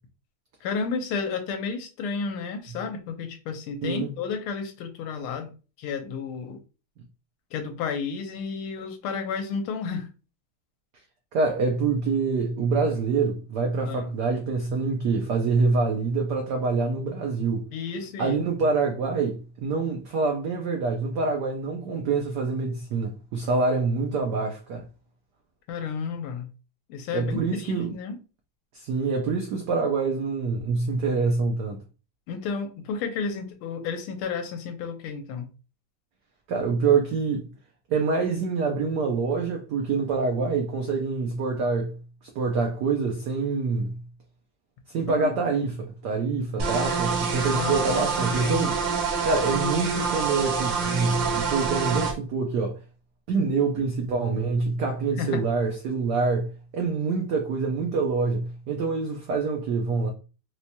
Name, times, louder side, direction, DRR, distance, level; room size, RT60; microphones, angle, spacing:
voice 1, 0.6-5.5 5.8-6.6 7.5-10.1 13.9-14.1 17.7-18.4 25.7-26.5 26.9-28.2 32.3-35.5 45.2-45.3 47.5-48.7 55.2-55.4, left 5 dB, 85° left, 1.5 m, -32 dB
voice 2, 3.8-4.1 11.3-17.7 18.2-24.9 27.1-28.0 28.7-31.8 36.5-37.5 37.9-41.9 42.3-44.0 44.9-48.8 49.3-52.8 53.3-60.1, right 4 dB, 90° right, 0.9 m, -26 dB
sound 1, 46.6-52.1, right 5 dB, 70° right, 1.4 m, -26 dB
4.4 x 2.2 x 2.7 m
omnidirectional pair, 2.4 m